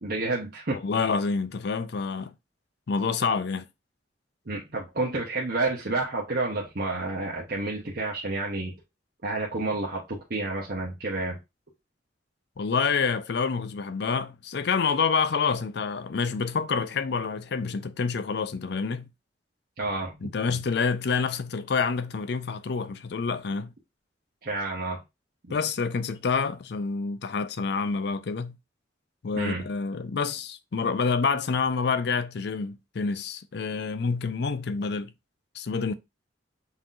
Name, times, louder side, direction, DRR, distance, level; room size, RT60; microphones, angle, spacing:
voice 1, 0.0-0.8 4.5-8.7 9.2-11.4 19.8-20.2 24.4-25.0 29.3-29.6, right 2 dB, 55° right, 1.0 m, -30 dB
voice 2, 0.7-2.3 2.9-3.6 12.6-19.1 20.2-23.7 25.5-28.6 29.2-35.1 35.5-35.9, left 5 dB, 60° left, 0.5 m, -27 dB
5.6 x 3.0 x 2.5 m
head